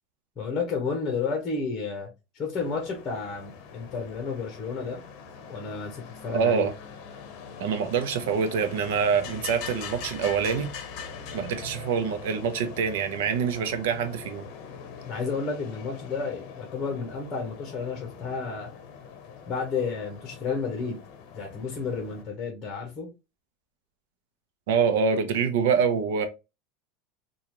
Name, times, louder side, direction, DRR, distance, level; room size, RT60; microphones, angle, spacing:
voice 1, 0.4-2.1 2.3-5.0 5.5-6.7 15.1-18.7 19.5-21.0 21.3-23.1, left 4 dB, 20° left, 1.0 m, -31 dB
sound 1, 2.5-22.2, left 6 dB, 50° left, 0.8 m, -42 dB
voice 2, 6.3-6.7 7.6-10.7 11.3-14.4 24.7-26.2, right 6 dB, 90° right, 0.7 m, -25 dB
3.8 x 2.4 x 3.0 m
supercardioid pair, 165°, 0 cm